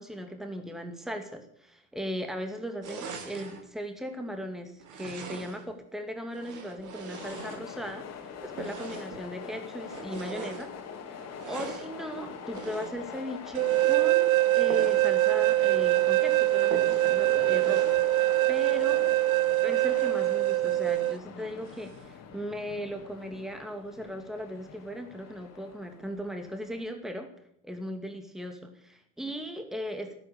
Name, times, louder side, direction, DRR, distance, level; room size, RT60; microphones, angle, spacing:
voice 1, 0.0-8.1 8.4-10.7 11.1-19.1 19.6-27.3 27.6-30.1, equal, ahead, 6 dB, 2.3 m, -38 dB
sound 1, 2.8-3.6 4.8-5.7 6.3-8.0 8.5-9.2 9.8-10.7 11.3-11.9 12.5-13.1 13.5-14.0 14.7-15.1 15.4-15.5 15.9-16.0 16.7-17.2 17.5-18.0, right 5 dB, 45° right, 3.1 m, -40 dB
sound 2, 7.1-26.9, left 7 dB, 35° left, 3.0 m, -43 dB
sound 3, 13.6-21.2, right 18 dB, 75° right, 0.5 m, -24 dB
13.5 x 13.0 x 6.8 m, 0.68 s
hypercardioid pair, 85°, 42 cm